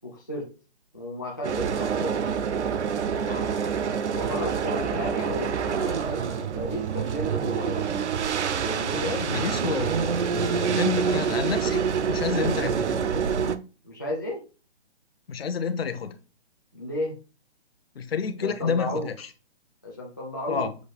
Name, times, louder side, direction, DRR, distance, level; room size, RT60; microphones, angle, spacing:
voice 1, 0.0-0.5 0.9-2.2 4.1-7.9 8.6-9.1 12.6-13.2 13.8-14.4 16.7-17.2 18.4-19.1 19.8-20.7, left 1 dB, 20° left, 0.4 m, -33 dB
sound 1, 1.4-13.6, right 7 dB, 80° right, 0.6 m, -26 dB
voice 2, 3.2-3.6 9.0-12.9 15.3-16.1 17.9-19.3 20.5-20.8, left 6 dB, 60° left, 0.7 m, -30 dB
6.2 x 2.4 x 3.3 m
hypercardioid pair, 165°, 34 cm